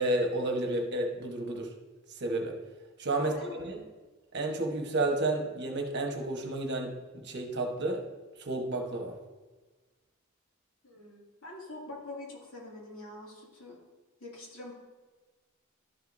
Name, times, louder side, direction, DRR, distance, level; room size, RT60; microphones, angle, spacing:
voice 1, 0.0-1.7 2.1-2.6 3.0-3.8 4.3-8.0 8.4-9.2, right 2 dB, 55° right, 3 dB, 1.1 m, -31 dB
voice 2, 3.2-3.5 10.8-13.8 14.2-14.7, left 2 dB, 85° left, -4 dB, 2.5 m, -44 dB
12.0 x 6.4 x 2.6 m, 1.3 s
head